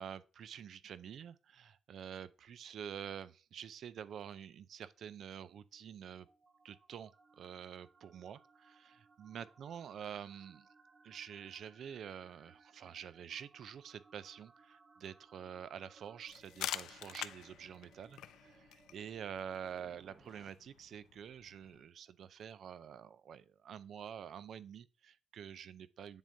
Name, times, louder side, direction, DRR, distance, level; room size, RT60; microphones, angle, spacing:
voice 1, 0.0-6.3 6.6-10.7 11.0-26.2, right 8 dB, 70° right, 0.4 m, -48 dB
sound 1, 5.4-20.5, right 4 dB, 35° right, 0.8 m, -65 dB
sound 2, 16.3-21.8, left 12 dB, 85° left, 0.4 m, -47 dB
10.5 x 3.6 x 2.7 m
cardioid pair, 80°, 0 cm